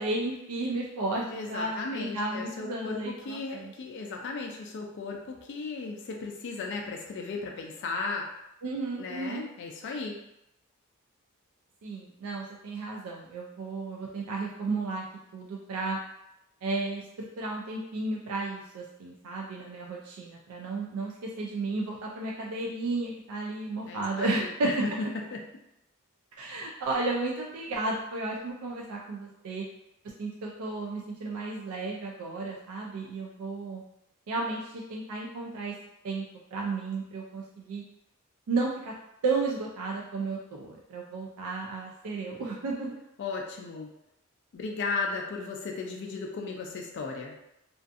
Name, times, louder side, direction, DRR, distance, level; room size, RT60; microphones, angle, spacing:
voice 1, 0.0-3.7 8.6-9.5 11.8-15.1 15.3-16.0 16.6-24.8 26.3-29.7 30.2-33.8 34.3-35.7 36.0-37.8 38.5-38.9 39.2-42.9, right 3 dB, 75° right, -2 dB, 0.3 m, -33 dB
voice 2, 1.3-8.3 9.0-10.2 23.9-24.9 25.3-25.4 43.2-43.9 44.5-47.3, left 4 dB, 55° left, 1 dB, 0.3 m, -35 dB
2.5 x 2.3 x 2.4 m, 0.85 s
head